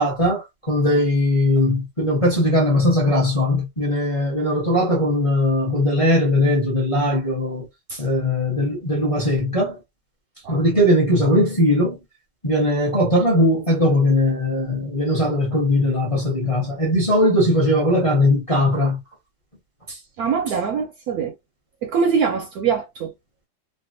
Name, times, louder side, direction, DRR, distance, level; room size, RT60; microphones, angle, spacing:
voice 1, 0.0-7.7 8.0-9.8 10.5-12.0 12.4-19.0, left 1 dB, 25° left, 0.9 m, -19 dB
voice 2, 19.9-21.3 21.8-23.1, right 6 dB, 70° right, 0.9 m, -23 dB
3.3 x 2.3 x 2.6 m
omnidirectional pair, 2.0 m